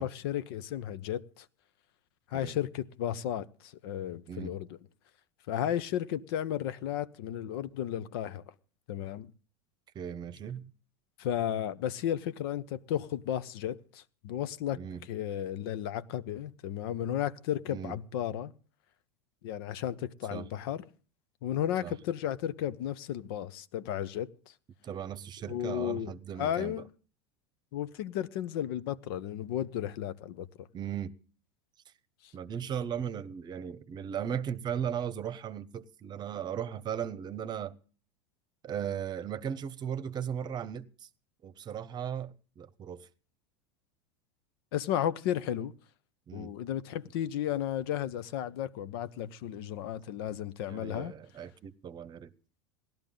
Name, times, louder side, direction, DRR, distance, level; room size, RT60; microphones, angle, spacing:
voice 1, 0.0-1.4 2.3-4.8 5.5-8.4 8.9-9.3 11.2-18.5 19.4-20.8 21.4-24.3 25.5-26.1 26.4-26.9 27.7-30.7 44.7-45.7 46.3-51.1, left 11 dB, 65° left, 0.8 m, -34 dB
voice 2, 9.9-10.7 14.7-15.1 17.7-17.9 20.3-20.5 21.8-21.9 24.8-26.8 30.7-31.1 32.3-37.7 38.6-41.1 41.4-43.1 46.3-46.5 50.6-52.3, right 8 dB, 30° right, 0.9 m, -37 dB
17.5 x 12.0 x 3.8 m
hypercardioid pair, 95°, 13 cm